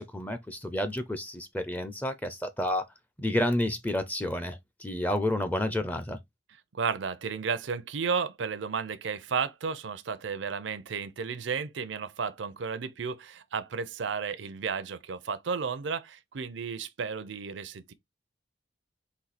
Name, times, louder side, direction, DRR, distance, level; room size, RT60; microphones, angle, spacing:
voice 1, 0.0-2.9 3.2-6.2, left 1 dB, 10° left, 0.5 m, -30 dB
voice 2, 6.7-17.9, right 5 dB, 80° right, 0.5 m, -33 dB
4.2 x 2.7 x 4.0 m
head